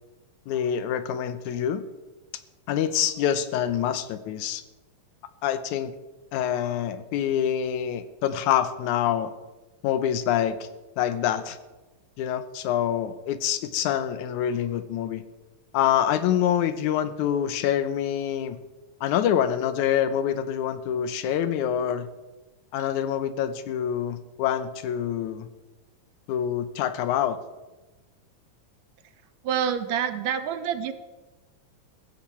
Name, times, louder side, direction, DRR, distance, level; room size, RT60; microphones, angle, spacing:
voice 1, 0.5-1.8 2.7-4.6 5.4-5.9 6.3-9.3 9.8-10.7 11.0-11.6 12.2-15.2 15.7-18.6 19.0-22.1 22.7-25.5 26.3-27.4, left 10 dB, 90° left, 12 dB, 2.2 m, -26 dB
voice 2, 29.4-30.9, right 8 dB, 75° right, 10 dB, 2.0 m, -27 dB
16.5 x 14.0 x 4.4 m, 1.1 s
omnidirectional pair, 3.4 m